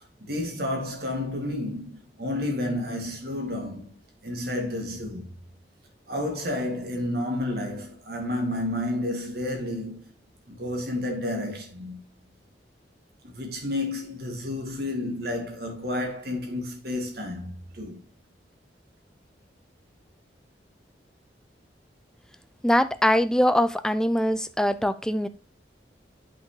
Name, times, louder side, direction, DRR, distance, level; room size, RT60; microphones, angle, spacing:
voice 1, 0.2-3.9 4.2-5.3 6.1-10.0 10.5-12.0 13.2-18.0, left 1 dB, 60° right, 2.4 m, -31 dB
voice 2, 22.6-25.3, equal, 5° left, 0.4 m, -22 dB
8.1 x 5.9 x 3.2 m
head